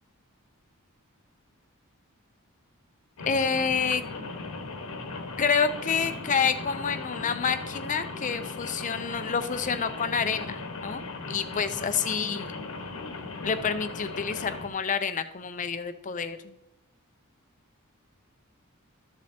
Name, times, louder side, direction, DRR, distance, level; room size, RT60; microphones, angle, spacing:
Rain, 3.2-14.7, left 3 dB, 75° left, 1.4 m, -38 dB
voice 1, 3.3-4.0 5.4-12.5 13.4-16.5, left 6 dB, 35° left, 11 dB, 0.5 m, -28 dB
13.0 x 7.5 x 2.8 m, 0.95 s
head